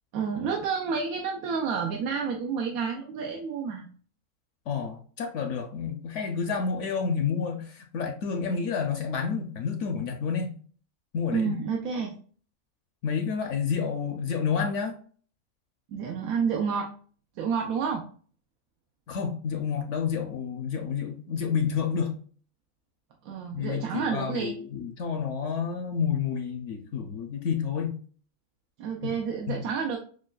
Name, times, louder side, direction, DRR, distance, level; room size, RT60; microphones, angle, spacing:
voice 1, 0.1-3.9 11.3-12.1 15.9-16.9 17.4-18.0 23.2-24.6 28.8-30.0, right 6 dB, 85° right, 1 dB, 1.1 m, -29 dB
voice 2, 4.7-10.5 11.1-11.6 13.0-15.0 19.1-22.1 23.5-28.0 29.0-29.1 29.5-29.6, left 6 dB, 65° left, 5 dB, 0.8 m, -29 dB
6.2 x 2.2 x 2.3 m, 0.44 s
omnidirectional pair, 1.5 m